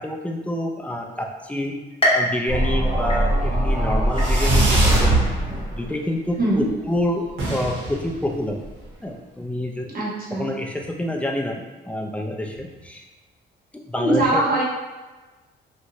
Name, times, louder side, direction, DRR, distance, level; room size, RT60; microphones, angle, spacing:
voice 1, 0.0-1.7 2.1-5.3 5.7-8.6 9.0-9.9 10.4-13.0 13.7-14.4, left 1 dB, 5° left, 1 dB, 0.3 m, -27 dB
sound 1, 2.0-3.7 4.2-4.8 5.3-5.4 6.3-6.4, left 1 dB, 30° left, 0.8 m, -26 dB
sound 2, 2.5-5.8, right 1 dB, 15° right, 0.9 m, -20 dB
Fireworks, 4.1-5.1 5.4-6.0 6.2-6.3 6.6-6.7 6.9-7.0 7.3-8.9, right 1 dB, 75° right, 0.8 m, -28 dB
voice 2, 9.9-10.5 14.0-14.6, right 1 dB, 50° right, -4 dB, 0.9 m, -21 dB
2.9 x 2.1 x 2.7 m, 1.2 s
cardioid pair, 90°, 20 cm